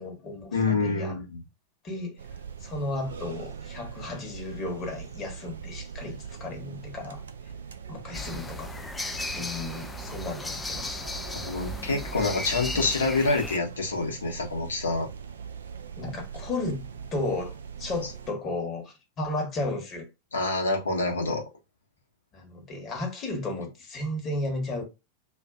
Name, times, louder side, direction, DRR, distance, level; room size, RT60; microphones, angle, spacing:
voice 1, 0.0-1.2 1.8-2.1 2.6-7.2 7.9-8.7 9.3-11.1 16.0-16.9 17.1-20.1 22.3-24.8, left 2 dB, 30° left, 1.2 m, -34 dB
voice 2, 0.5-1.4 11.3-15.1 20.3-21.4, left 3 dB, 70° left, 0.9 m, -27 dB
sound 1, 2.2-18.3, right 7 dB, 65° right, 0.4 m, -42 dB
sound 2, 8.1-13.6, left 2 dB, 10° left, 0.3 m, -36 dB
2.5 x 2.4 x 2.4 m
figure-of-eight pair, 90°, 0 cm